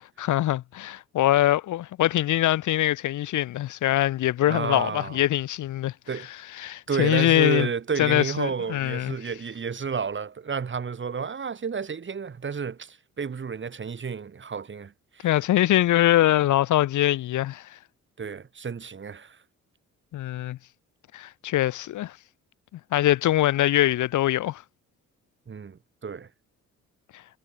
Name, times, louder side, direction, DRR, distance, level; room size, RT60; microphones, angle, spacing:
voice 1, 0.2-5.9 6.6-7.7 8.0-9.2 15.2-17.7 20.1-20.6 21.1-22.1 22.9-24.6, left 14 dB, 80° left, 1.8 m, -23 dB
voice 2, 4.5-5.2 6.1-6.3 6.9-15.3 18.2-19.4 25.5-26.3, right 6 dB, 40° right, 5.1 m, -31 dB
cardioid pair, 90°, 30 cm